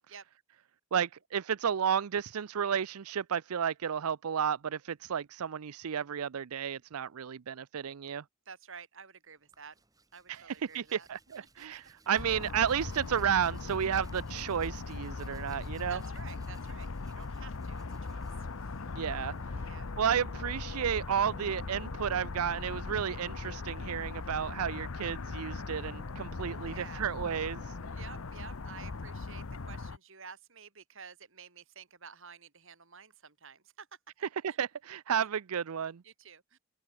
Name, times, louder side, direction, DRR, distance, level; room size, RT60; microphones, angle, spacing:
voice 1, 0.9-8.2 10.3-16.0 19.0-19.6 20.0-27.7 34.4-36.0, right 8 dB, 80° right, 0.5 m, -32 dB
voice 2, 8.5-9.8 10.1-11.1 11.6-11.7 15.9-18.8 19.6-19.9 26.6-27.1 27.9-33.9 34.5-34.6 36.0-36.6, right 6 dB, 60° right, 3.6 m, -51 dB
Hands, 9.3-20.7, right 3 dB, 15° right, 4.8 m, -62 dB
sound 1, 12.2-30.0, left 3 dB, 65° left, 0.8 m, -39 dB
sound 2, 17.7-28.2, equal, 5° left, 3.2 m, -58 dB
head